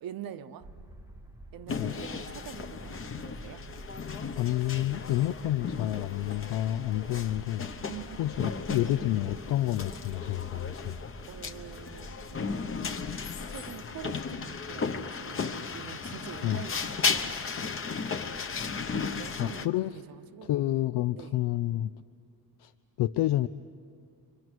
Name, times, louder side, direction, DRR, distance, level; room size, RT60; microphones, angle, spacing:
voice 1, 0.0-0.7 1.5-3.7 7.9-8.2 8.8-8.9 11.3-12.7 13.5-17.4 18.9-20.5 21.1-21.4, right 10 dB, 60° right, 11 dB, 1.0 m, -45 dB
sound 1, 0.6-13.2, right 1 dB, 5° right, 1.0 m, -48 dB
sound 2, 1.7-19.7, left 5 dB, 35° left, 1.0 m, -35 dB
voice 2, 4.4-7.7 8.2-11.0 16.4-16.6 19.4-20.0 20.4-21.9 22.6-22.7 23.0-23.5, left 14 dB, 90° left, 11 dB, 0.6 m, -29 dB
29.5 x 24.5 x 6.2 m, 2.2 s
cardioid pair, 150°, 39 cm